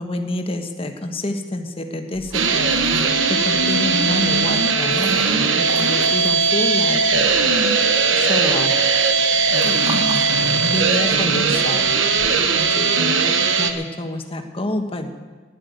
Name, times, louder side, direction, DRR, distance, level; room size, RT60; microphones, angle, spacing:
voice 1, 0.0-2.7 3.3-7.3 8.1-8.7 9.5-10.3 10.7-13.2 13.6-15.1, left 1 dB, 30° left, 4 dB, 1.3 m, -28 dB
sound 1, 2.1-12.7, right 1 dB, 25° right, 3.0 m, -40 dB
sound 2, 2.3-13.7, right 5 dB, 80° right, 1.1 m, -18 dB
11.5 x 10.0 x 9.5 m, 1.4 s
head